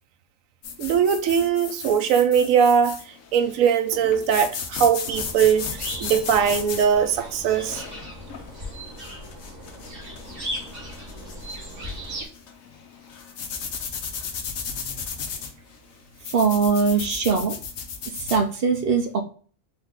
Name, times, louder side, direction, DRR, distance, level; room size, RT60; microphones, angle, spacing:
sound 1, 0.6-18.4, left 6 dB, 80° left, 1.2 m, -35 dB
voice 1, 0.8-7.8, right 7 dB, 75° right, 1.0 m, -21 dB
sound 2, 5.0-12.2, equal, 35° right, 1.5 m, -37 dB
voice 2, 16.3-17.5 18.2-19.2, right 5 dB, 55° right, 0.7 m, -21 dB
4.1 x 3.0 x 3.6 m
omnidirectional pair, 1.4 m